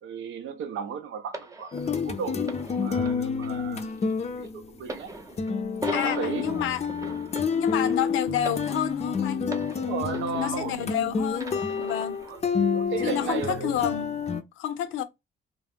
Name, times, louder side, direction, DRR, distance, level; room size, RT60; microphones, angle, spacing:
voice 1, 0.0-2.4 2.8-3.9 4.3-5.1 5.8-6.7 9.8-10.9 12.3-13.7, right 7 dB, 75° right, 0.6 m, -35 dB
sound 1, 1.3-11.0 11.4-12.4 13.2-13.3, right 2 dB, 15° right, 0.5 m, -41 dB
sound 2, 1.7-4.8 5.4-14.4, left 5 dB, 35° left, 0.4 m, -29 dB
voice 2, 5.9-7.2 7.5-9.4 10.4-11.5 11.8-12.2 13.0-14.1 14.6-15.0, left 9 dB, 85° left, 0.5 m, -29 dB
2.3 x 2.0 x 3.4 m
cardioid pair, 90°, 20 cm